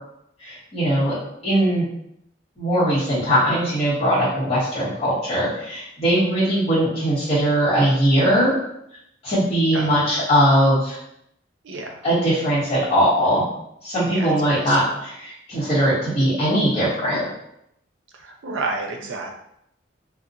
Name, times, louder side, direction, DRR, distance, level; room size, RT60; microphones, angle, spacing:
voice 1, 0.4-1.1 1.4-1.9 2.6-8.6 9.2-11.0 12.0-13.5 13.8-17.3, equal, 35° left, -12 dB, 0.9 m, -20 dB
voice 2, 9.7-10.1 11.6-12.0 14.0-14.8 18.1-19.3, right 3 dB, 85° right, 2 dB, 0.5 m, -30 dB
2.7 x 2.1 x 2.5 m, 0.76 s
head